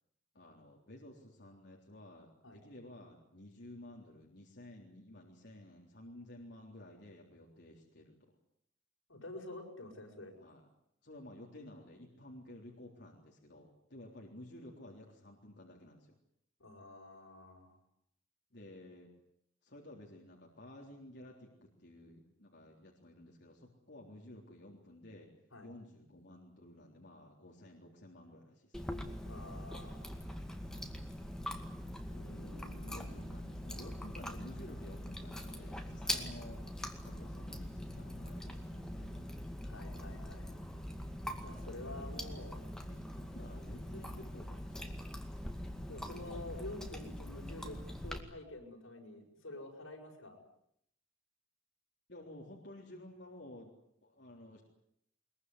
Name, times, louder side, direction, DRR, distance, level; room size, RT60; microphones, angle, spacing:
voice 1, 0.3-8.3 10.4-10.7 11.0-16.2 18.5-19.1 19.6-25.3 25.6-29.0 32.9-36.6 37.0-39.3 41.8-42.3 42.6-45.2 52.1-53.7 54.0-54.6, left 1 dB, 55° left, -1 dB, 3.7 m, -53 dB
voice 2, 9.1-10.4 16.6-17.8 25.5-25.7 29.2-30.2 32.1-33.2 36.0-36.2 39.6-40.6 41.4-42.6 45.9-50.4, left 2 dB, 80° left, 3 dB, 6.7 m, -49 dB
Chewing mastication, 28.7-48.2, equal, 5° left, 2.1 m, -43 dB
22.5 x 22.5 x 9.8 m, 0.72 s
head